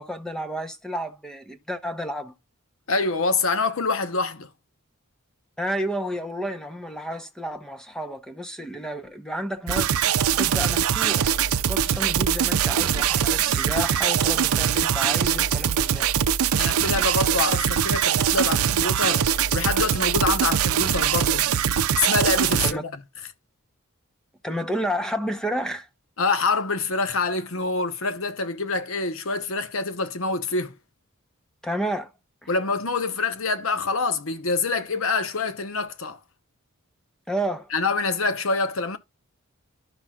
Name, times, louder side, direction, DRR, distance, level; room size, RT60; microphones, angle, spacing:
voice 1, 0.0-2.3 5.6-9.9 10.4-11.3 11.7-16.1 22.6-22.8 24.4-25.9 31.6-32.1 32.4-32.5 37.3-37.7, equal, 5° left, 0.8 m, -31 dB
voice 2, 2.9-4.5 16.6-21.5 22.0-23.0 26.2-30.7 32.5-36.2 37.7-39.0, left 3 dB, 65° left, 1.0 m, -26 dB
sound 1, 9.7-22.7, right 8 dB, 80° right, 0.5 m, -22 dB
12.0 x 5.8 x 2.4 m
head